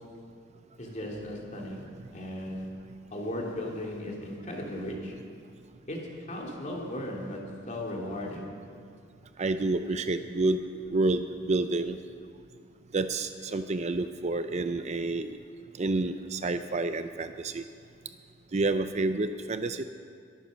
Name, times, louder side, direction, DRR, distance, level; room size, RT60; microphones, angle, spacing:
voice 1, 0.8-1.9 2.1-2.7 3.1-5.1 5.9-7.4 7.7-8.5, left 1 dB, 35° left, -1 dB, 2.7 m, -36 dB
voice 2, 9.4-10.6 10.9-12.0 12.9-15.4 15.8-17.6 18.5-19.8, right 2 dB, 35° right, 9 dB, 0.5 m, -29 dB
22.5 x 9.3 x 6.3 m, 2.2 s
head